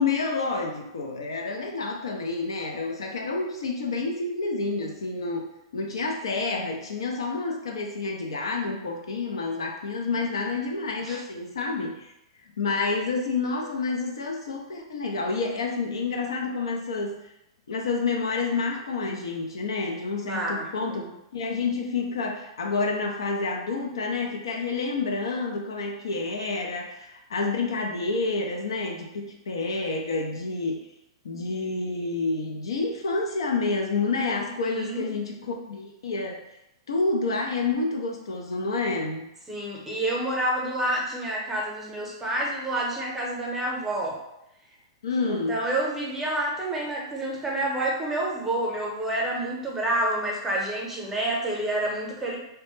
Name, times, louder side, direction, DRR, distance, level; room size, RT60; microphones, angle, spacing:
voice 1, 0.0-5.5 5.7-12.1 12.4-17.3 17.7-30.8 31.2-36.4 36.9-39.3 45.0-45.6, left 3 dB, 85° left, 1 dB, 0.4 m, -29 dB
voice 2, 20.2-21.1 34.6-35.1 39.5-44.2 45.2-52.4, right 1 dB, 10° right, -2 dB, 0.7 m, -28 dB
2.1 x 2.1 x 3.0 m, 0.86 s
hypercardioid pair, 120°, 3 cm